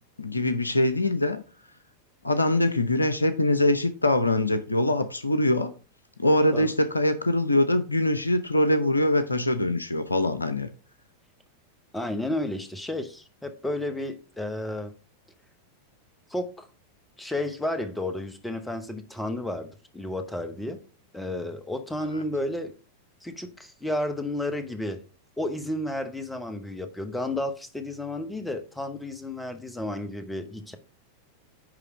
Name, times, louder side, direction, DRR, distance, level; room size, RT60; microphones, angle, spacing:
voice 1, 0.2-1.4 2.2-5.7 6.2-10.7, left 1 dB, 80° left, 0.6 m, -23 dB
voice 2, 11.9-14.9 16.3-16.7 17.2-20.8 21.1-22.7 23.2-25.0 25.4-30.8, left 1 dB, 5° left, 1.0 m, -32 dB
9.9 x 3.3 x 4.8 m
figure-of-eight pair, 90°, 0 cm